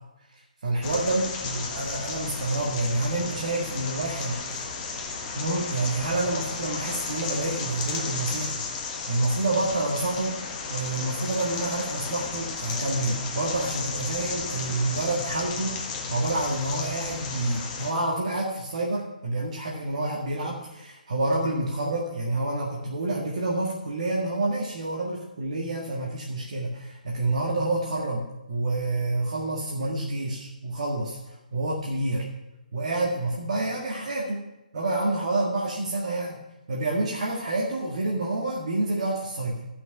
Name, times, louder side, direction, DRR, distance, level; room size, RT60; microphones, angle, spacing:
voice 1, 0.3-4.6 5.3-10.4 10.7-31.2 31.5-32.3 32.7-34.4 34.7-36.4 36.7-39.6, right 2 dB, 50° right, -3 dB, 1.7 m, -28 dB
sound 1, 0.8-17.9, left 4 dB, 20° left, 1.3 m, -34 dB
13.5 x 6.0 x 5.7 m, 1.0 s
figure-of-eight pair, 140°, 5 cm